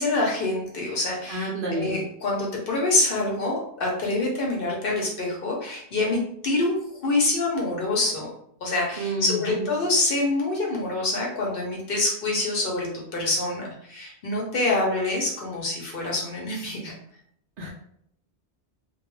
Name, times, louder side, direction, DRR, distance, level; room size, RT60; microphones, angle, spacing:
voice 1, 0.0-8.3 8.6-16.9, left 2 dB, 55° left, -2 dB, 0.8 m, -26 dB
voice 2, 1.3-2.0 9.0-9.7 17.6-17.7, right 1 dB, 60° right, -2 dB, 0.6 m, -29 dB
2.2 x 2.2 x 3.0 m, 0.70 s
omnidirectional pair, 1.2 m